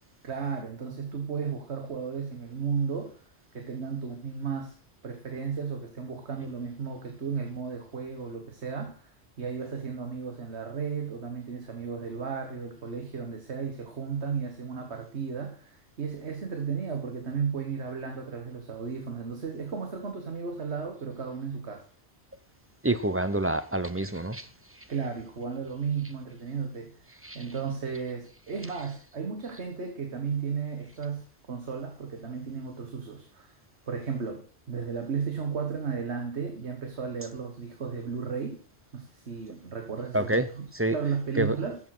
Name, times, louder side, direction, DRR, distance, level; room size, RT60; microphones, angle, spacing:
voice 1, 0.2-3.2 3.5-4.8 5.0-21.9 24.9-33.6 33.9-38.6 38.9-40.6 40.9-41.8, right 6 dB, 65° right, 1.7 m, -34 dB
voice 2, 22.8-24.5 24.7-24.8 27.2-27.5 40.1-40.5 40.7-41.0 41.4-41.6, right 1 dB, 15° right, 0.5 m, -27 dB
12.5 x 7.4 x 6.0 m
omnidirectional pair, 1.2 m